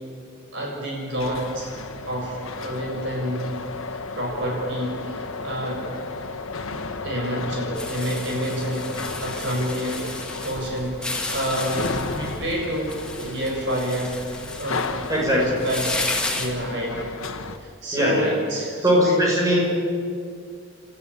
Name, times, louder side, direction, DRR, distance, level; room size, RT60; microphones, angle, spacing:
voice 1, 0.5-1.7 2.1-3.5 3.9-5.9 7.0-8.9 9.2-10.0 10.4-14.3 14.6-14.8 15.4-17.1 17.6-19.6, equal, 60° right, -1 dB, 7.1 m, -28 dB
sound 1, 1.2-17.6, left 3 dB, 90° left, 1.6 m, -34 dB
sound 2, 7.7-16.5, left 2 dB, 5° left, 2.2 m, -33 dB
voice 2, 15.1-15.6 17.9-18.3 18.8-19.6, equal, 15° right, -3 dB, 6.6 m, -20 dB
29.5 x 14.0 x 8.6 m, 2.3 s
head